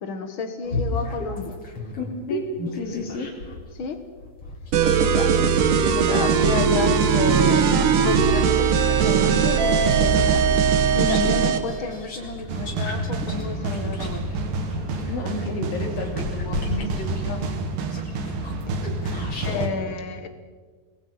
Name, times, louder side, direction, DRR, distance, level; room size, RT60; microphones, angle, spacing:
voice 1, 0.0-1.6 3.7-4.0 5.0-5.3 5.9-10.4 10.9-14.2 19.4-20.3, left 5 dB, 85° left, 7 dB, 1.1 m, -30 dB
sound 1, 0.6-3.6 4.2-8.5 9.0-19.7, left 2 dB, 35° left, 4.8 m, -34 dB
voice 2, 2.3-3.3 10.9-11.4 14.8-17.7, left 2 dB, 65° left, 4 dB, 4.4 m, -32 dB
sound 2, 4.7-11.6, right 6 dB, 60° right, 2.7 m, -19 dB
sound 3, 12.5-19.7, right 2 dB, 90° right, 4.0 m, -29 dB
29.5 x 21.0 x 5.6 m, 1.4 s
omnidirectional pair, 4.6 m